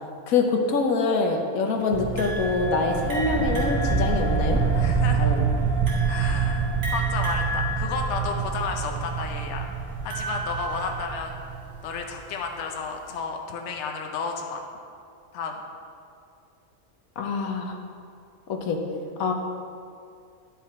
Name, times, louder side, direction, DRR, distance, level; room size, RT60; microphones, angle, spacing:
voice 1, 0.3-4.6 5.1-5.4 17.2-17.8 18.5-18.8 19.2-19.3, left 4 dB, 80° left, 3 dB, 1.3 m, -25 dB
sound 1, 1.9-12.1, right 5 dB, 35° right, 0.4 m, -26 dB
sound 2, 2.2-11.5, equal, 55° right, 1.9 m, -35 dB
voice 2, 4.7-5.4 6.0-9.6 10.0-11.4 11.8-14.6 15.3-15.6, left 4 dB, 60° left, 3 dB, 1.0 m, -32 dB
10.5 x 5.7 x 4.2 m, 2.4 s
omnidirectional pair, 1.5 m